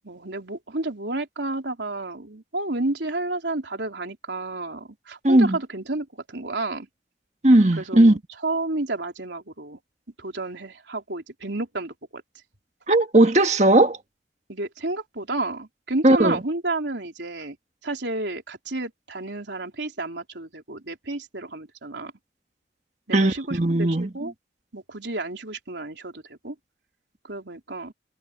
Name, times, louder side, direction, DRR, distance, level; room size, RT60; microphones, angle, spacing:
voice 1, 0.0-6.9 7.7-9.8 10.2-12.2 14.5-17.6 17.8-22.1 23.1-24.3 24.7-26.6 27.3-27.9, right 2 dB, 80° right, 3.6 m, -31 dB
voice 2, 5.2-5.6 7.4-8.2 12.9-14.0 16.0-16.4 23.1-24.1, right 1 dB, 40° right, 1.7 m, -17 dB
head